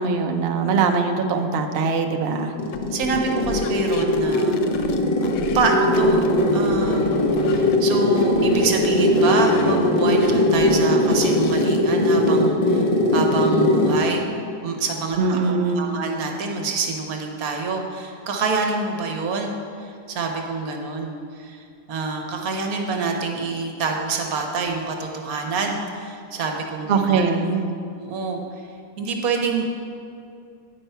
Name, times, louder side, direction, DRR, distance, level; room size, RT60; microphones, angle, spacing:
voice 1, 0.0-2.5 15.2-15.9 26.9-27.7, right 4 dB, 85° right, 4 dB, 0.5 m, -22 dB
sound 1, 2.3-14.1, left 1 dB, 35° left, 0.6 m, -20 dB
sound 2, 2.7-5.7 5.9-7.8 8.1-11.8, left 6 dB, 80° left, 1.2 m, -34 dB
voice 2, 2.9-4.6 5.2-5.3 5.5-14.3 14.6-19.5 19.8-21.1 21.4-21.6 21.9-27.3 28.0-28.4 29.0-29.7, right 4 dB, 60° right, 2 dB, 1.3 m, -26 dB
9.7 x 4.6 x 5.5 m, 2.4 s
omnidirectional pair, 1.8 m